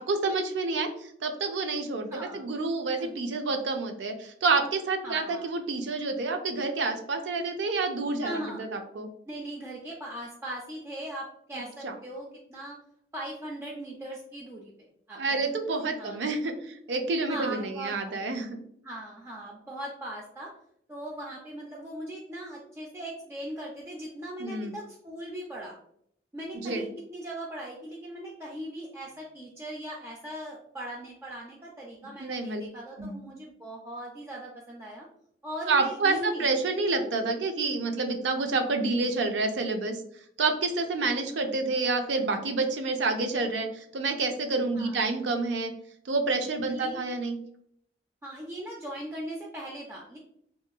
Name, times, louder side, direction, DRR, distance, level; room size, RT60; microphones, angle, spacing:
voice 1, 0.0-9.1 11.8-11.9 15.2-18.6 24.4-24.7 26.5-26.8 32.2-32.6 33.0-33.2 35.7-40.0 40.4-45.7 46.1-47.4, right 3 dB, 90° right, 5 dB, 0.4 m, -28 dB
voice 2, 2.1-2.5 3.0-3.2 5.0-5.5 8.2-8.7 9.3-12.8 13.1-16.3 17.3-18.2 18.8-20.5 20.9-25.8 26.3-35.1 35.4-36.5 44.7-45.0 46.7-47.1 48.2-50.2, right 1 dB, 15° right, -3 dB, 0.3 m, -39 dB
2.8 x 2.4 x 2.2 m, 0.68 s
head